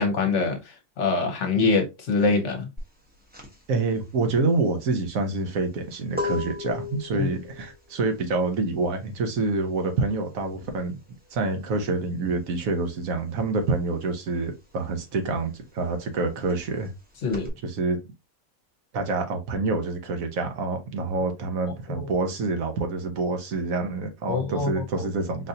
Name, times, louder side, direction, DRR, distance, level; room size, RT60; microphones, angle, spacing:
voice 1, 0.0-2.7 7.1-7.3 17.2-17.5 21.9-22.1 24.3-24.7, left 4 dB, 60° left, 1.1 m, -24 dB
sound 1, 2.8-13.0 13.3-17.5, left 4 dB, 10° right, 0.7 m, -38 dB
voice 2, 3.7-11.0 11.3-16.9 17.6-18.0 18.9-25.5, right 3 dB, 75° right, 1.2 m, -27 dB
4.0 x 2.5 x 2.6 m
omnidirectional pair, 1.5 m